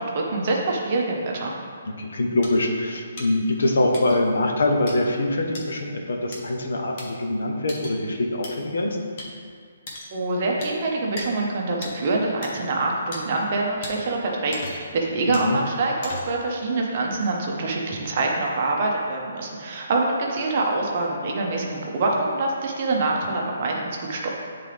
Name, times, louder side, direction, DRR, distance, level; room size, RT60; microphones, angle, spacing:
voice 1, 0.0-1.5 10.1-23.8 24.1-24.3, right 2 dB, 30° right, -1 dB, 0.8 m, -25 dB
voice 2, 2.0-9.0 15.3-15.6, left 2 dB, 70° left, 2 dB, 1.0 m, -24 dB
sound 1, 2.4-2.5 3.2-3.3 3.9-4.2 4.9-5.0 5.5-5.7 6.3-6.4 7.0-7.1 7.7-8.0 8.4-8.5 9.2-9.3 9.9-10.1 10.6-10.7 11.2-11.3 11.8-11.9 12.4-12.5 13.1-13.2 13.8-13.9 14.5-14.9 15.3-15.5 16.0-16.4, left 2 dB, 30° left, 0.9 m, -36 dB
9.3 x 3.8 x 3.4 m, 2.1 s
hypercardioid pair, 175°, 0 cm